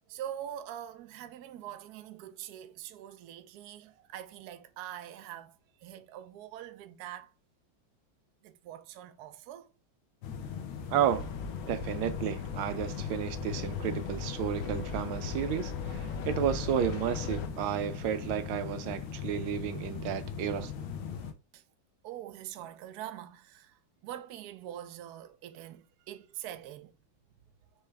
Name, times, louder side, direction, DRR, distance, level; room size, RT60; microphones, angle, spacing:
voice 1, 0.1-5.5 5.8-7.3 8.4-9.7 21.5-21.6 22.0-26.9, right 11 dB, 70° right, 1.0 m, -44 dB
sound 1, 10.2-21.3, left 7 dB, 85° left, 1.5 m, -39 dB
voice 2, 10.9-11.3 11.7-20.7, right 10 dB, 90° right, 1.4 m, -32 dB
sound 2, 11.1-17.5, left 5 dB, 65° left, 0.9 m, -39 dB
4.6 x 3.2 x 3.2 m
omnidirectional pair, 2.2 m